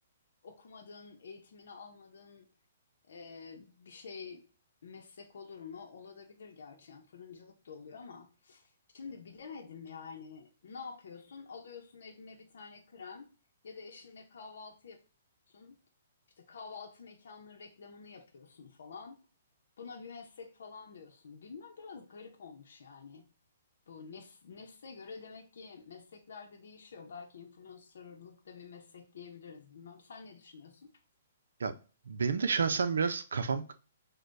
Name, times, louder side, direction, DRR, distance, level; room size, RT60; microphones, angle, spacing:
voice 1, 0.4-2.5 3.1-4.4 4.8-13.3 13.6-15.0 15.5-15.8 16.4-19.2 19.8-23.3 23.9-30.9, left 5 dB, 70° left, 2 dB, 0.7 m, -49 dB
voice 2, 32.1-33.7, right 5 dB, 85° right, 10 dB, 0.5 m, -30 dB
6.2 x 2.2 x 2.6 m, 0.36 s
hypercardioid pair, 160°, 0 cm